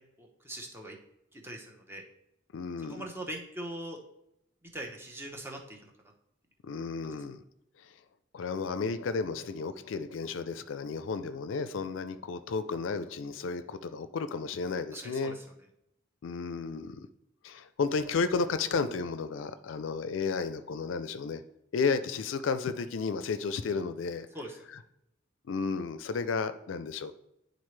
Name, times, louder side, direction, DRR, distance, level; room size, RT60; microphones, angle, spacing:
voice 1, 0.2-1.0 1.3-2.0 2.9-4.0 4.6-5.9 7.0-7.2 14.9-15.4 24.3-24.6, right 1 dB, 10° right, 1 dB, 0.9 m, -41 dB
voice 2, 2.5-3.0 6.6-7.4 7.8-7.9 8.3-15.4 16.2-17.1 17.4-21.4 21.7-24.3 25.5-27.1, left 4 dB, 75° left, 11 dB, 0.4 m, -33 dB
9.8 x 3.9 x 3.2 m, 0.80 s
head